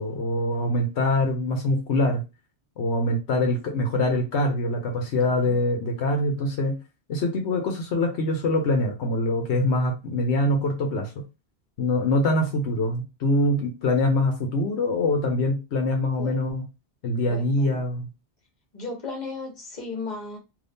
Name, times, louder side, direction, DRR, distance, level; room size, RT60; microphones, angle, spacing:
voice 1, 0.0-2.2 2.8-6.8 7.1-11.1 11.8-16.6 17.0-18.1, left 1 dB, 80° left, 1.0 m, -24 dB
voice 2, 5.2-5.5 16.2-16.3 17.2-17.9 18.7-20.4, left 3 dB, 40° left, 1.3 m, -36 dB
2.7 x 2.6 x 3.4 m
omnidirectional pair, 1.1 m